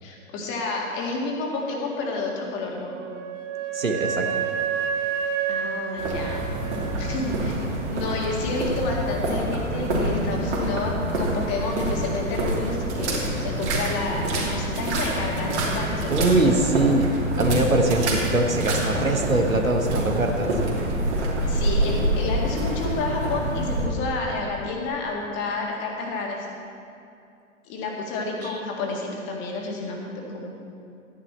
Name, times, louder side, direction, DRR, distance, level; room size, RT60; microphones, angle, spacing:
voice 1, 0.0-3.0 5.5-6.4 7.0-7.6 7.9-16.7 21.5-26.5 27.6-30.5, left 3 dB, 30° left, 0 dB, 1.9 m, -30 dB
Wind instrument woodwind instrument, 2.8-7.5, right 8 dB, 30° right, 0.9 m, -29 dB
voice 2, 3.7-4.4 16.1-17.1 17.4-20.6 28.4-28.6, right 2 dB, 90° right, 4 dB, 1.2 m, -22 dB
sound 1, 6.0-23.9, right 1 dB, 55° right, 2.8 m, -26 dB
12.5 x 10.0 x 4.3 m, 2.6 s
figure-of-eight pair, 105°, 39 cm